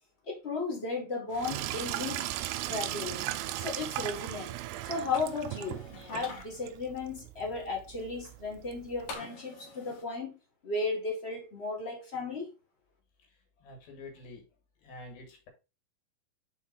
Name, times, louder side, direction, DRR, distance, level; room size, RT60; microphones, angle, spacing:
voice 1, 0.2-3.2 3.6-4.6 4.8-12.5, left 3 dB, 35° left, 1.0 m, -35 dB
Sink (filling or washing), 1.3-9.2, right 14 dB, 85° right, 2.4 m, -38 dB
sound 1, 5.1-6.4 9.1-10.0, left 4 dB, 75° left, 3.1 m, -45 dB
voice 2, 13.6-14.5 14.8-15.5, left 2 dB, 90° left, 4.0 m, -47 dB
7.2 x 4.2 x 4.0 m
omnidirectional pair, 4.1 m